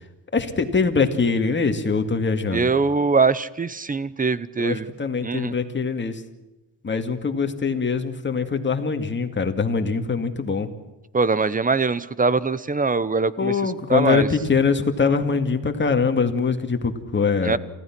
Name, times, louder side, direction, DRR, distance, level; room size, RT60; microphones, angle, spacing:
voice 1, 0.3-2.7 4.6-6.2 6.8-10.7 13.4-17.6, left 5 dB, 25° left, 6 dB, 2.2 m, -23 dB
voice 2, 2.5-4.9 5.2-5.5 11.1-14.3 17.4-17.6, right 4 dB, 20° right, 18 dB, 0.8 m, -22 dB
28.5 x 15.5 x 6.1 m, 1.0 s
cardioid pair, 110°, 41 cm